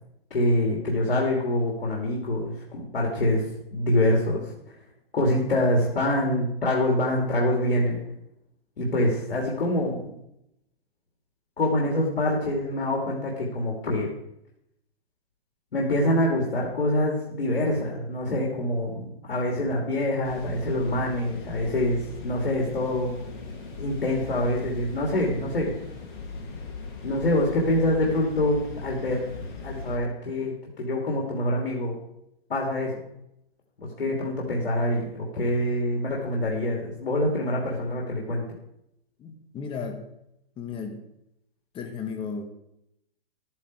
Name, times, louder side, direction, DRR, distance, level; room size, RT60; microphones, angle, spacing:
voice 1, 0.3-4.8 5.1-8.0 8.8-10.1 11.6-14.1 15.7-23.1 23.8-25.7 27.0-29.2 29.6-32.0 32.5-33.0 33.8-38.4, left 1 dB, 90° left, -2 dB, 3.3 m, -25 dB
sound 1, 20.2-30.0, left 3 dB, 50° left, 6.3 m, -39 dB
voice 2, 39.2-40.0 40.6-41.0 41.7-42.4, left 5 dB, 15° left, 6 dB, 1.6 m, -34 dB
12.5 x 10.5 x 4.9 m, 0.80 s
hypercardioid pair, 145°, 30 cm